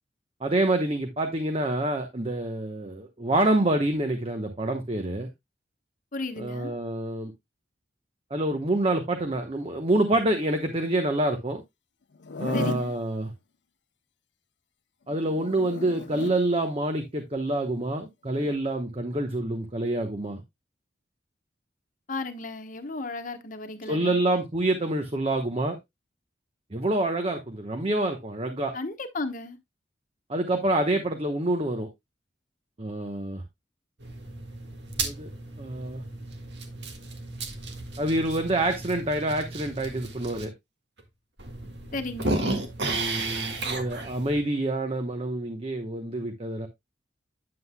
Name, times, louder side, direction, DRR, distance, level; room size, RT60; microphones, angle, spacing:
voice 1, 0.4-5.3 6.4-7.3 8.3-11.6 12.4-13.3 15.1-20.4 23.9-25.8 26.7-28.7 30.3-31.9 32.8-33.4 35.0-35.3 35.6-36.0 38.0-40.5 42.8-46.7, right 1 dB, 30° right, 1.0 m, -27 dB
voice 2, 6.1-6.7 12.5-12.9 22.1-24.2 28.7-29.6 41.9-42.4, left 2 dB, 45° left, 1.2 m, -34 dB
Zipper (clothing), 12.2-12.9 15.1-16.4 18.3-18.6, left 3 dB, 75° left, 0.7 m, -35 dB
sound 1, 34.0-40.4 41.0-41.1 41.4-44.4, right 2 dB, 70° right, 1.7 m, -34 dB
9.7 x 7.8 x 2.2 m
head